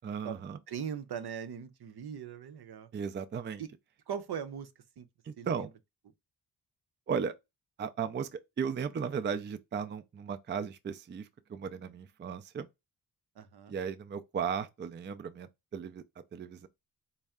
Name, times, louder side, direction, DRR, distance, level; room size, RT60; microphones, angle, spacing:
voice 1, 0.0-0.6 2.9-3.6 5.3-5.7 7.1-7.3 7.8-12.7 13.7-16.0 16.3-16.7, right 6 dB, 30° right, 0.4 m, -36 dB
voice 2, 0.7-2.9 3.6-3.7 4.1-4.7 5.0-5.1 5.4-5.7 13.4-13.8, right 8 dB, 70° right, 0.7 m, -40 dB
4.4 x 2.1 x 3.5 m
wide cardioid pair, 100°, 40 cm